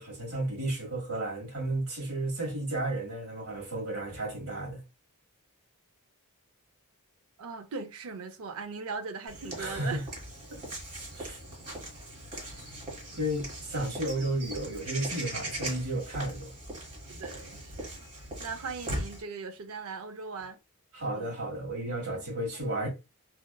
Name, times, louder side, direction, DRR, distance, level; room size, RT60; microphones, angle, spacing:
voice 1, 0.0-4.8 9.6-10.0 10.5-10.6 11.1-11.4 13.2-16.5 20.9-22.9, right 1 dB, 90° right, 1.5 m, -33 dB
voice 2, 7.4-10.0 17.1-18.1 18.4-20.6 21.1-21.3 22.1-22.4, right 4 dB, 65° right, 0.5 m, -39 dB
Walk footsteps / Bird vocalization bird call bird song, 9.3-19.2, right 1 dB, 35° right, 1.1 m, -40 dB
2.8 x 2.2 x 2.2 m
head